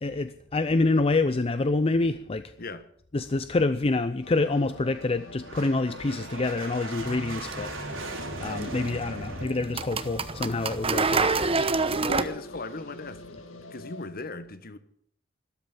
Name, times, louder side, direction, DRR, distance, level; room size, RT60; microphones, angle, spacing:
voice 1, 0.0-2.5 3.1-8.1 8.4-11.5, left 3 dB, 30° left, 0.5 m, -27 dB
sound 1, 3.2-9.5, right 2 dB, 80° right, 4.4 m, -40 dB
sound 2, 4.2-14.1, left 2 dB, 80° left, 1.9 m, -46 dB
sound 3, 7.0-12.2, right 4 dB, 30° right, 0.9 m, -29 dB
voice 2, 12.0-14.8, left 2 dB, 50° left, 1.2 m, -38 dB
13.0 x 12.5 x 7.3 m
head